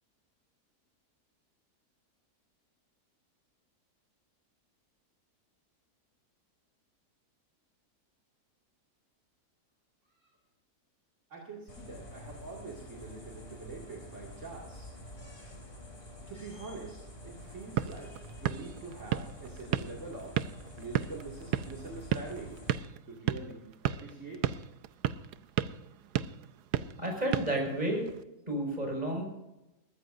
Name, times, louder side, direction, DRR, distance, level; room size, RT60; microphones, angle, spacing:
voice 1, 11.3-14.9 16.3-17.0 17.2-20.3 20.8-22.6 23.1-24.5, right 3 dB, 50° right, -3 dB, 2.7 m, -44 dB
sound 1, 11.7-22.8, left 1 dB, 35° left, 3.2 m, -48 dB
sound 2, 17.4-28.2, right 11 dB, 80° right, 1.2 m, -35 dB
voice 2, 27.0-28.0 28.5-29.3, right 1 dB, 25° right, 0 dB, 5.6 m, -31 dB
21.5 x 14.0 x 2.6 m, 0.94 s
omnidirectional pair, 1.7 m